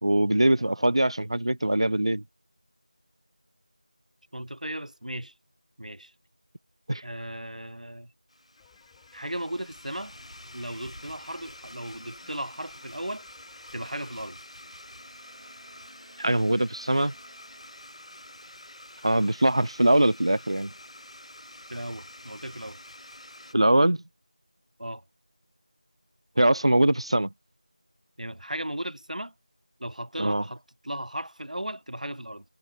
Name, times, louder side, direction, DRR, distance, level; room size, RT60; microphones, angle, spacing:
voice 1, 0.0-2.2 6.9-7.0 16.2-17.1 19.0-20.7 23.5-24.0 26.4-27.3 30.2-30.4, right 1 dB, 45° right, 1.3 m, -22 dB
voice 2, 0.6-1.0 4.3-5.3 5.8-6.1 7.0-8.1 9.1-10.2 10.5-13.3 13.7-14.4 21.7-22.8 24.8-25.0 28.2-29.3 29.8-32.5, right 1 dB, 70° right, 7.0 m, -36 dB
Domestic sounds home sounds, 8.3-23.6, left 1 dB, 50° left, 5.1 m, -48 dB
sound 1, 8.6-13.9, left 9 dB, 5° left, 2.4 m, -60 dB
Bowed string instrument, 14.8-18.2, right 4 dB, 10° right, 5.6 m, -59 dB
figure-of-eight pair, 180°, 4 cm